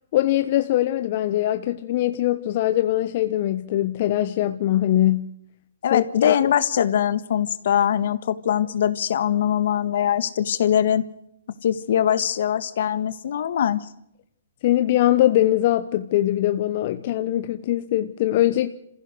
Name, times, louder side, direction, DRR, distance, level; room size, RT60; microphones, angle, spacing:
voice 1, 0.1-5.3 5.9-6.4 14.6-18.7, left 13 dB, 45° left, 10 dB, 1.0 m, -22 dB
voice 2, 5.8-11.1 11.6-13.9, left 9 dB, 65° left, 14 dB, 1.6 m, -22 dB
27.5 x 15.5 x 6.3 m, 0.76 s
hypercardioid pair, 140°, 0 cm